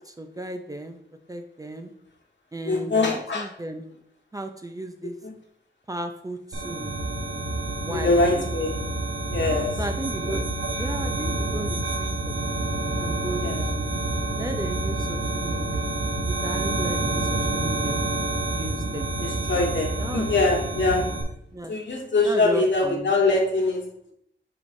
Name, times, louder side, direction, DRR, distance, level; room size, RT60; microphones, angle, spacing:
voice 1, 0.0-1.0 1.3-1.9 2.5-3.8 4.3-5.1 5.9-7.0 7.8-8.4 9.8-10.5 10.8-12.4 13.0-13.9 14.4-15.8 16.2-18.0 18.5-19.1 20.0-20.3 21.5-21.8 22.2-23.1, right 1 dB, 20° right, 6 dB, 0.5 m, -35 dB
voice 2, 2.6-3.5 5.2-5.3 7.9-8.7 9.3-9.7 13.4-13.7 19.2-21.1 21.7-23.9, left 3 dB, 70° left, -1 dB, 1.6 m, -23 dB
sound 1, 6.5-21.2, right 2 dB, 80° right, 1.6 m, -28 dB
8.4 x 4.7 x 2.7 m, 0.72 s
wide cardioid pair, 120°, 19 cm